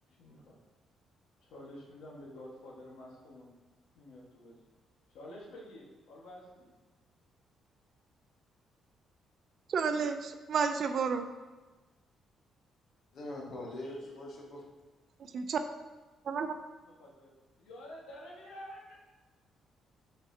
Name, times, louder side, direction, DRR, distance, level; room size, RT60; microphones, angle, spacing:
voice 1, 0.2-0.6 1.4-3.5 3.9-4.6 5.1-6.7 16.8-17.3 17.6-19.0, left 1 dB, 90° left, -4 dB, 1.5 m, -49 dB
voice 2, 9.7-11.3 15.2-15.6 16.3-16.6, right 5 dB, 60° right, 8 dB, 0.4 m, -31 dB
voice 3, 13.1-14.6, left 1 dB, 70° left, -3 dB, 1.6 m, -42 dB
6.4 x 5.8 x 2.8 m, 1.2 s
cardioid pair, 90°, 0 cm